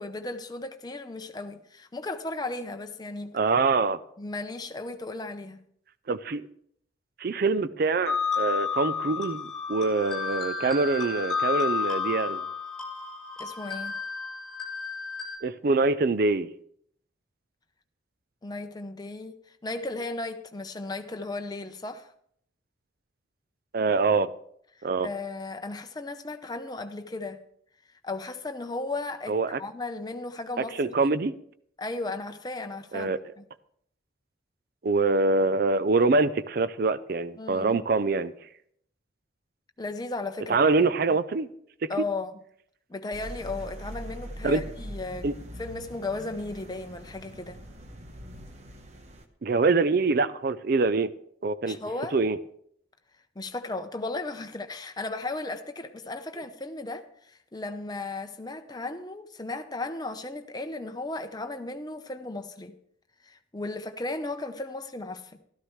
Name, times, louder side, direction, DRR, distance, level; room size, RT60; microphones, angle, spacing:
voice 1, 0.0-3.4 4.2-5.6 13.4-14.0 18.4-22.1 24.7-27.4 28.0-30.9 31.8-33.4 37.4-37.8 39.8-40.9 41.9-42.4 42.9-47.6 51.6-52.1 53.4-62.7 63.2-65.4, left 2 dB, 20° left, 0.7 m, -35 dB
voice 2, 3.3-4.0 6.1-6.5 7.2-12.4 15.4-16.5 23.7-24.3 24.8-25.1 29.3-29.6 30.6-31.3 32.9-33.2 34.8-38.3 40.5-41.5 41.8-41.9 44.4-44.6 45.2-45.3 49.4-51.1 51.4-51.8 52.1-52.4, right 3 dB, 50° right, 0.4 m, -24 dB
sound 1, 8.1-15.4, left 5 dB, 5° left, 2.7 m, -31 dB
sound 2, 43.1-49.2, equal, 35° right, 1.0 m, -42 dB
13.0 x 13.0 x 3.2 m
head